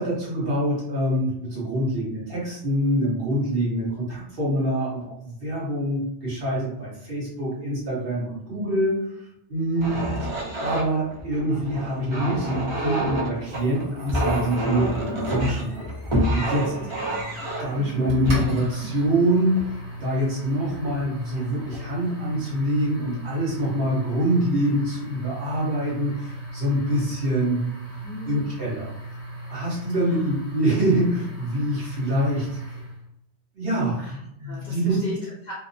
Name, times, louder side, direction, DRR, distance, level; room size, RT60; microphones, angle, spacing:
voice 1, 0.0-10.3 10.6-16.7 17.6-27.7 28.3-28.9 29.5-32.8 33.5-34.0 34.4-35.0, right 1 dB, 55° right, -6 dB, 1.1 m, -25 dB
sound 1, 9.8-20.0 20.7-20.9 21.4-21.8, right 1 dB, 35° right, 0.5 m, -28 dB
sound 2, 13.5-33.0, right 1 dB, 75° right, 1.3 m, -38 dB
voice 2, 16.6-17.4 17.7-18.2 28.0-28.5 30.0-30.4 34.0-35.5, left 2 dB, 50° left, -5 dB, 0.6 m, -38 dB
2.8 x 2.0 x 2.6 m, 0.78 s
omnidirectional pair, 1.2 m